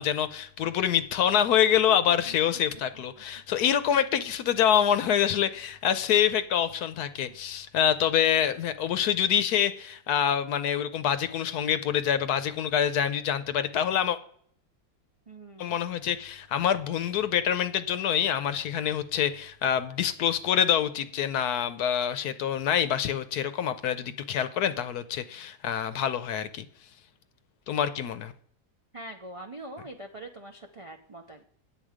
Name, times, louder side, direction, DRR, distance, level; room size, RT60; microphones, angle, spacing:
voice 1, 0.0-14.2 15.6-26.6 27.7-28.3, left 9 dB, 75° left, 12 dB, 1.1 m, -26 dB
voice 2, 15.3-15.8 28.9-31.4, right 1 dB, 55° right, 3 dB, 0.3 m, -43 dB
9.2 x 7.6 x 4.9 m, 0.62 s
omnidirectional pair, 1.7 m